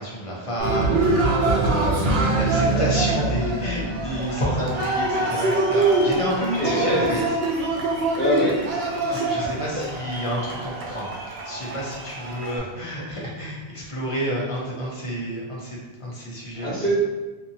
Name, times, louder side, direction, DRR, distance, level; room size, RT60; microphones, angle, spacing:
voice 1, 0.0-7.2 9.1-11.1 11.4-16.8, equal, 35° left, -4 dB, 0.6 m, -29 dB
Cheering, 0.6-12.6, right 2 dB, 75° right, 0.8 m, -24 dB
voice 2, 6.6-7.2 8.1-8.6 9.7-9.8 16.6-16.9, equal, 10° left, -10 dB, 1.2 m, -24 dB
2.6 x 2.6 x 2.6 m, 1.2 s
omnidirectional pair, 1.1 m